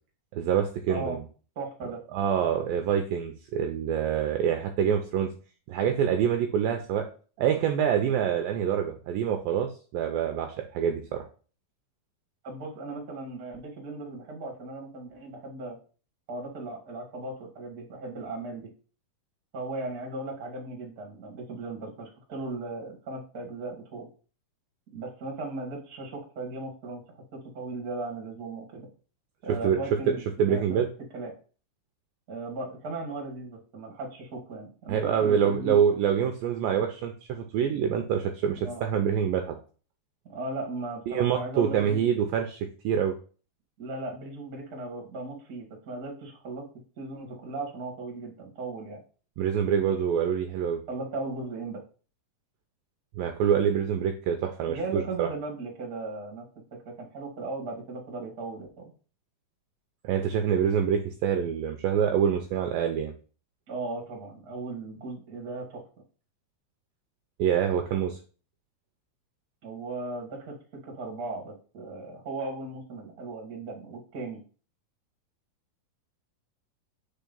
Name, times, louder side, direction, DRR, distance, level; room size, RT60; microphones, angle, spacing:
voice 1, 0.3-1.2 1.8-5.3 5.7-7.1 7.4-11.2 29.6-29.8 30.4-30.9 34.9-39.6 41.1-43.1 49.4-50.8 53.2-55.3 60.0-63.1 67.4-68.2, right 8 dB, 80° right, 5 dB, 2.2 m, -26 dB
voice 2, 0.9-1.2 1.5-2.0 12.4-15.8 16.3-18.7 19.5-24.1 24.9-27.0 27.3-28.9 29.4-30.8 31.1-31.3 32.3-35.8 38.6-38.8 40.3-42.0 43.8-46.7 47.0-49.0 50.9-51.8 54.7-58.9 63.7-65.8 69.6-74.4, right 2 dB, 35° right, -1 dB, 1.6 m, -37 dB
4.6 x 4.6 x 5.3 m, 0.38 s
omnidirectional pair, 4.5 m